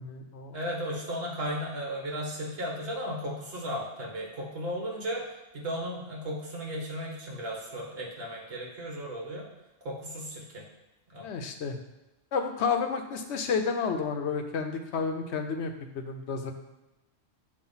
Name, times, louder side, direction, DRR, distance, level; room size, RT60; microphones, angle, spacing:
voice 1, 0.0-0.6 11.2-11.8 12.3-16.5, left 5 dB, 65° left, 5 dB, 0.9 m, -31 dB
voice 2, 0.5-5.2 5.5-9.5 9.8-10.6 11.1-11.3, equal, 55° right, -2 dB, 1.6 m, -35 dB
7.3 x 2.5 x 5.5 m, 1.0 s
omnidirectional pair, 1.3 m